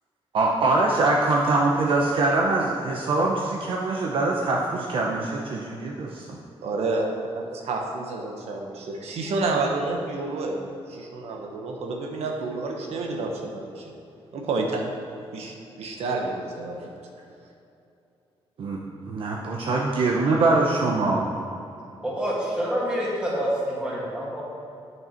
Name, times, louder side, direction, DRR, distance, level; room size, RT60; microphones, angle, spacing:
voice 1, 0.3-6.2 18.6-18.8 19.1-21.3, right 2 dB, 55° right, -1 dB, 0.8 m, -23 dB
voice 2, 6.6-7.1 7.3-10.6 10.9-13.9 14.3-14.8 15.3-16.9, right 3 dB, 85° right, 1 dB, 1.1 m, -29 dB
voice 3, 22.0-24.4, equal, 10° right, -6 dB, 1.9 m, -27 dB
9.0 x 6.5 x 4.4 m, 2.7 s
wide cardioid pair, 165°, 10 cm